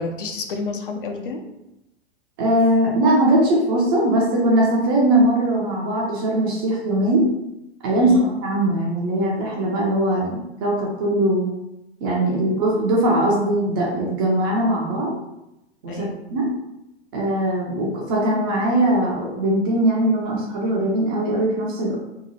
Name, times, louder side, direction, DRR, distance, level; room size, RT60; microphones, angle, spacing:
voice 1, 0.0-1.4 8.0-8.3 15.9-16.2, left 3 dB, 55° left, 4 dB, 0.5 m, -29 dB
voice 2, 2.4-7.3 7.8-11.5 12.0-15.2 15.8-16.5 17.1-22.0, right 1 dB, 20° right, -3 dB, 0.3 m, -20 dB
2.8 x 2.2 x 2.7 m, 0.92 s
figure-of-eight pair, 100°, 33 cm